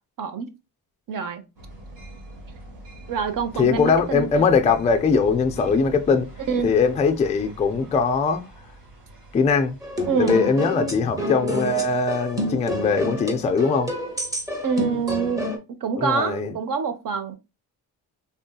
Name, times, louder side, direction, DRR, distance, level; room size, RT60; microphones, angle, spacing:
voice 1, 0.2-0.5 1.1-1.4 3.1-4.5 6.5-6.7 10.1-10.4 14.6-15.5 15.8-17.3, right 6 dB, 50° right, 0.6 m, -26 dB
sound 1, 1.6-15.3, right 1 dB, 80° right, 1.7 m, -45 dB
voice 2, 3.5-6.3 6.6-8.4 9.3-9.8 10.2-13.9 16.0-16.5, left 5 dB, 20° left, 0.3 m, -21 dB
sound 2, 9.8-15.6, equal, 10° right, 0.8 m, -29 dB
3.6 x 2.6 x 2.2 m
cardioid pair, 95°, 41 cm